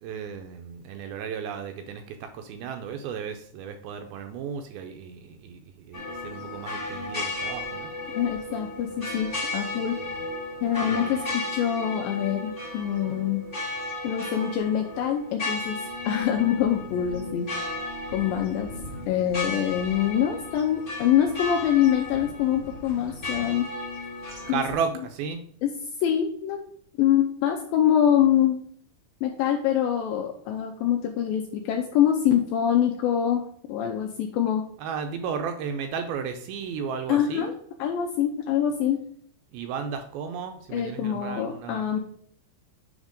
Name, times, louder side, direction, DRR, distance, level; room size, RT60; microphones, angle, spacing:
voice 1, 0.0-7.9 10.0-10.3 10.8-11.2 24.4-25.4 34.8-37.5 39.5-41.9, right 6 dB, 80° right, 6 dB, 2.3 m, -34 dB
sound 1, 5.9-24.8, left 2 dB, 30° left, 1.0 m, -34 dB
voice 2, 8.2-10.0 10.6-13.4 14.0-17.5 18.1-18.7 19.1-23.7 24.5-24.6 25.6-25.7 26.0-26.6 27.0-28.6 29.2-33.4 33.7-34.7 37.1-37.5 37.8-39.0 40.7-42.0, left 10 dB, 85° left, 3 dB, 2.1 m, -24 dB
7.3 x 3.6 x 5.0 m, 0.63 s
omnidirectional pair, 4.7 m